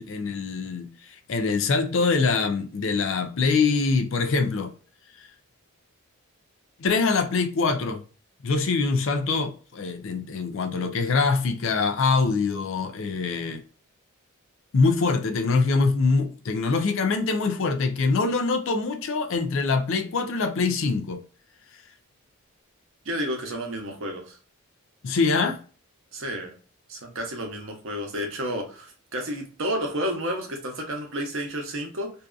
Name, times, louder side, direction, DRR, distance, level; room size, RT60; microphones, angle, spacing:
voice 1, 0.0-4.7 6.8-8.0 8.4-13.6 14.7-21.2 25.0-25.6, left 4 dB, 60° left, 0.4 m, -24 dB
voice 2, 23.0-24.4 26.1-26.5 26.9-32.1, equal, 60° right, 0.7 m, -31 dB
2.6 x 2.3 x 2.3 m
head